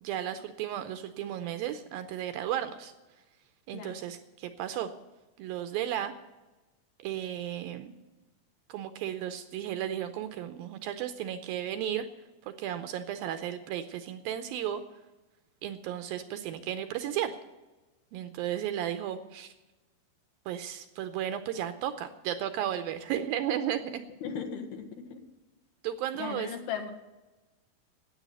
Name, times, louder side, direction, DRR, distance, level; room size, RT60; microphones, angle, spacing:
voice 1, 0.0-2.9 3.7-4.9 5.4-6.1 7.0-7.9 8.7-12.0 12.4-14.8 15.6-17.3 18.1-19.5 20.5-24.0 25.8-26.5, right 11 dB, 80° right, 9 dB, 2.3 m, -34 dB
voice 2, 24.2-25.3 26.1-26.9, left 7 dB, 75° left, 5 dB, 3.4 m, -37 dB
13.0 x 9.0 x 9.4 m, 1.1 s
omnidirectional pair, 4.6 m